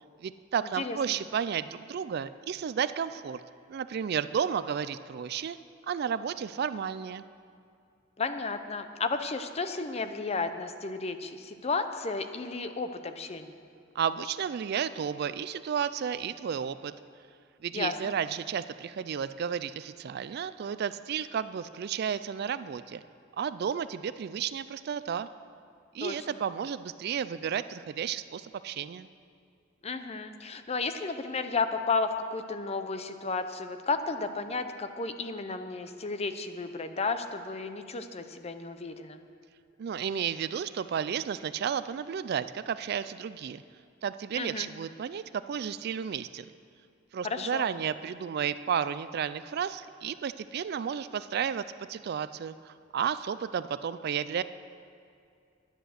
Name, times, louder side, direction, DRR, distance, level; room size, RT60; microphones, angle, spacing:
voice 1, 0.2-3.4 3.7-5.6 5.9-7.2 14.0-16.9 17.6-23.0 23.4-25.3 25.9-29.1 39.8-43.6 44.0-46.5 47.1-51.6 51.9-54.4, right 7 dB, 55° right, 14 dB, 0.3 m, -32 dB
voice 2, 8.2-13.5 17.7-18.1 26.0-26.1 29.8-39.2 44.4-44.7 47.2-47.7, left 4 dB, 35° left, 9 dB, 0.6 m, -33 dB
10.5 x 9.9 x 6.5 m, 2.4 s
head